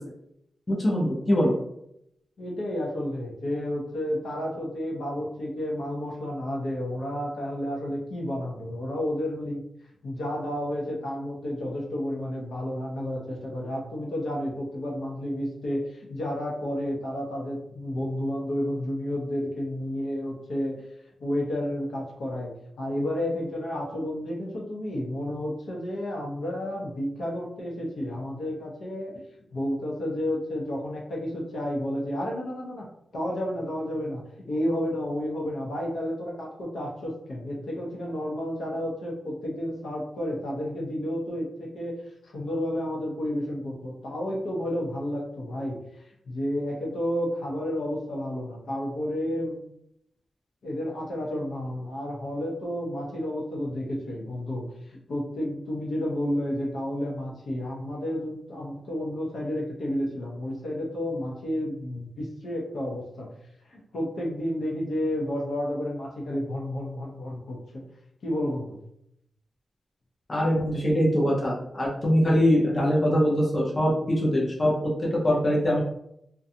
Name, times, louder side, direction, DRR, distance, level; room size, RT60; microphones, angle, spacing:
voice 1, 0.7-1.5 70.3-74.9 75.2-75.8, equal, 25° left, -4 dB, 0.5 m, -23 dB
voice 2, 2.4-9.6 10.0-20.8 21.2-29.2 29.5-32.9 33.1-42.0 42.2-49.6 50.6-63.3 63.7-67.8 68.2-68.8, left 1 dB, 70° left, -2 dB, 0.7 m, -31 dB
2.5 x 2.2 x 2.7 m, 0.78 s
wide cardioid pair, 180°, 0 cm